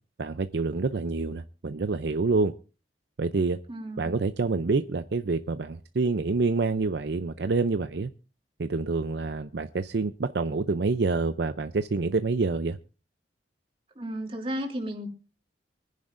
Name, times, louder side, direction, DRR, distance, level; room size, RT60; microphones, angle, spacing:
voice 1, 0.2-2.5 3.2-3.6 4.0-8.1 8.6-12.8, right 3 dB, 65° right, 0.5 m, -27 dB
voice 2, 3.7-4.2 14.0-15.1, equal, 35° right, 2.9 m, -34 dB
24.5 x 10.5 x 2.5 m
head